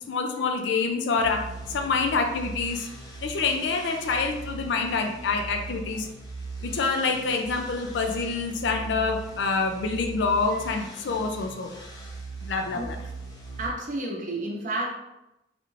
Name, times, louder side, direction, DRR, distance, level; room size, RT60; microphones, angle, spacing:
voice 1, 0.1-1.4 1.7-2.9 3.2-6.1 6.6-11.7 12.4-13.0, left 4 dB, 70° left, 4 dB, 0.4 m, -26 dB
sound 1, 1.2-13.7, right 3 dB, 20° left, 0.6 m, -40 dB
voice 2, 13.6-14.9, right 2 dB, 45° right, -1 dB, 0.7 m, -31 dB
3.4 x 2.4 x 3.1 m, 0.92 s
head